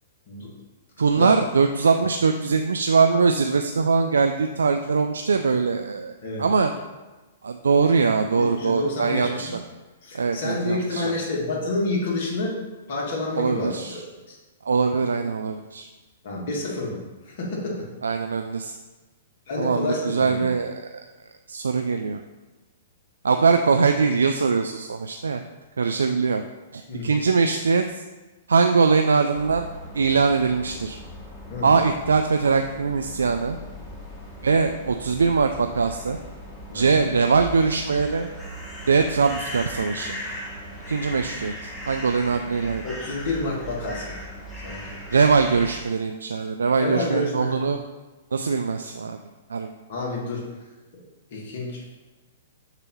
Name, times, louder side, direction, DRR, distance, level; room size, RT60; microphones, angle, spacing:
voice 1, 1.0-6.7 7.4-9.5 10.1-11.2 13.4-14.0 14.6-15.9 18.0-18.7 19.6-21.1 21.5-22.2 23.2-25.4 25.8-26.4 26.7-28.0 28.5-29.7 29.9-31.0 31.6-33.6 34.4-36.2 36.7-38.3 38.9-40.1 40.9-42.8 45.1-47.8 48.3-49.2 49.5-49.7, right 5 dB, 85° right, 6 dB, 0.3 m, -22 dB
voice 2, 8.4-9.6 10.0-12.6 12.9-14.0 14.3-14.4 16.2-17.0 17.3-17.9 19.5-20.5 26.9-27.2 31.5-31.7 36.7-37.0 42.8-44.1 44.6-45.0 46.8-47.7 49.9-50.4 50.9-51.0 51.3-51.8, left 2 dB, 60° left, -3 dB, 2.0 m, -29 dB
sound 1, 29.3-45.8, equal, 10° left, 1.5 m, -38 dB
6.6 x 3.0 x 5.5 m, 1.2 s
hypercardioid pair, 125°, 0 cm